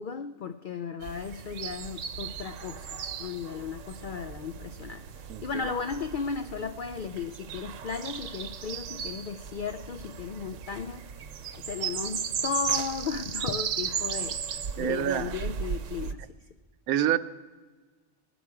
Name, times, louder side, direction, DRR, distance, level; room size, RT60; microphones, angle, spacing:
voice 1, 0.0-11.1 11.5-16.3, left 6 dB, 80° left, 9 dB, 0.4 m, -35 dB
sound 1, 1.0-16.1, right 7 dB, 70° right, 1.1 m, -36 dB
voice 2, 5.3-5.7 14.8-15.3 16.9-17.2, right 11 dB, 90° right, 12 dB, 1.1 m, -27 dB
19.5 x 12.0 x 4.8 m, 1.4 s
omnidirectional pair, 1.4 m